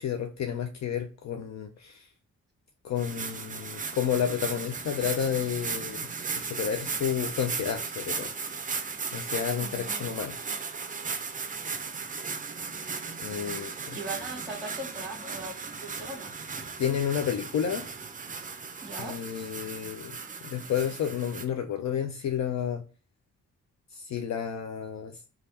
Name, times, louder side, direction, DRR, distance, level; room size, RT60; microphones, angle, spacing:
voice 1, 0.0-2.0 2.8-6.1 6.4-8.3 9.1-10.4 13.2-14.0 16.8-17.8 19.0-20.2 20.5-22.8 23.9-25.1, left 8 dB, 55° left, 0.4 m, -31 dB
sound 1, 3.0-21.4, right 5 dB, 25° right, 0.4 m, -36 dB
voice 2, 9.6-10.1 13.9-16.3 18.8-19.2, right 2 dB, ahead, 1.3 m, -39 dB
3.3 x 2.4 x 2.7 m
supercardioid pair, 55°, 33 cm